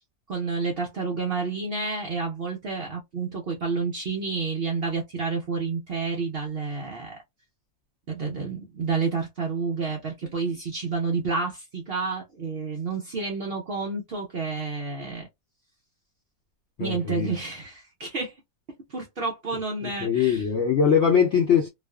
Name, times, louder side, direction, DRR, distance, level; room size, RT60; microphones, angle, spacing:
voice 1, 0.3-7.2 8.1-15.3 16.8-18.3 18.9-20.4, right 4 dB, 75° right, 0.5 m, -30 dB
voice 2, 16.8-17.3 19.8-21.7, left 7 dB, 85° left, 0.6 m, -22 dB
2.4 x 2.4 x 2.2 m
omnidirectional pair, 1.8 m